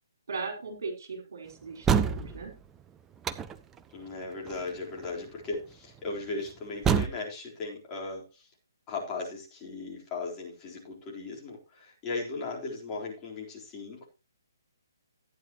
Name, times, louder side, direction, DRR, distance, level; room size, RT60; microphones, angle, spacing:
voice 1, 0.3-2.5, right 4 dB, 55° right, 3 dB, 4.4 m, -38 dB
sound 1, 1.8-2.5 3.2-3.8 4.5-4.7 5.0-5.1 6.8-7.1, right 7 dB, 10° right, 0.5 m, -25 dB
voice 2, 3.9-8.5 8.9-14.1, left 3 dB, 20° left, -3 dB, 4.0 m, -37 dB
14.5 x 9.8 x 3.0 m, 0.30 s
figure-of-eight pair, 135°, 2 cm